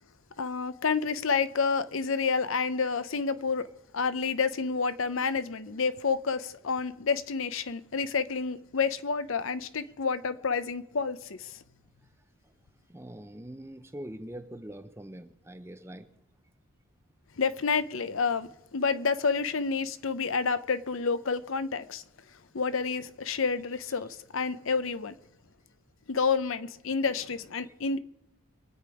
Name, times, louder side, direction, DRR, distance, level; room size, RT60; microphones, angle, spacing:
voice 1, 0.4-3.7 3.9-11.6 17.4-22.0 22.5-25.1 26.1-28.0, left 5 dB, 70° left, 0.7 m, -29 dB
voice 2, 12.9-16.1 27.6-27.7, right 1 dB, 10° right, 0.7 m, -43 dB
24.0 x 8.6 x 4.9 m
head